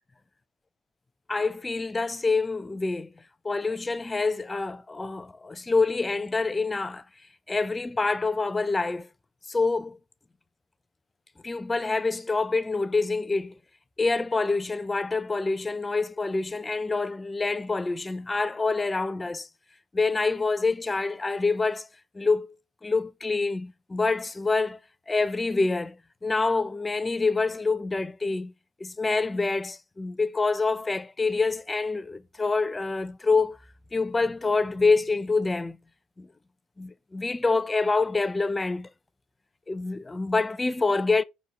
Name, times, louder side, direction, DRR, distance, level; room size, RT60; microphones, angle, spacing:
voice 1, 1.3-3.1 3.4-7.0 7.5-9.1 9.5-10.0 11.4-13.5 14.0-19.5 19.9-21.9 22.2-22.5 22.8-24.8 25.1-26.0 26.2-28.5 28.8-33.6 33.9-35.8 36.2-36.3 36.8-38.9 39.7-41.2, left 3 dB, 20° left, 0.4 m, -26 dB
4.4 x 4.2 x 5.2 m
supercardioid pair, 80°, 0 cm